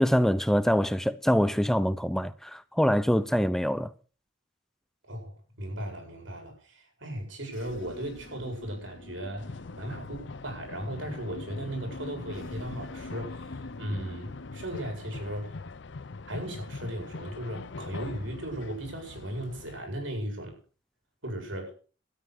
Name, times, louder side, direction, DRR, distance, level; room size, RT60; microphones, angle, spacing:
voice 1, 0.0-3.9, equal, ahead, 0.6 m, -24 dB
voice 2, 5.1-15.6 16.3-20.6 21.2-21.7, right 1 dB, 85° right, 7.9 m, -37 dB
sound 1, 7.5-14.6, left 1 dB, 85° left, 2.9 m, -46 dB
sound 2, 9.4-19.8, left 3 dB, 65° left, 0.6 m, -42 dB
13.5 x 10.5 x 6.6 m
head